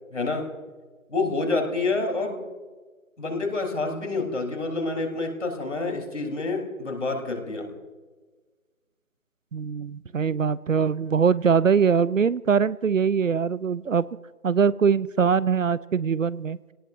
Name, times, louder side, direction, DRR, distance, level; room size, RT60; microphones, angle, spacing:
voice 1, 0.1-0.5 1.1-2.4 3.2-7.7, left 3 dB, 55° left, 3 dB, 3.5 m, -28 dB
voice 2, 9.5-14.1 14.4-16.6, right 6 dB, 60° right, 19 dB, 0.5 m, -22 dB
27.5 x 18.0 x 2.6 m, 1.4 s
figure-of-eight pair, 170°, 43 cm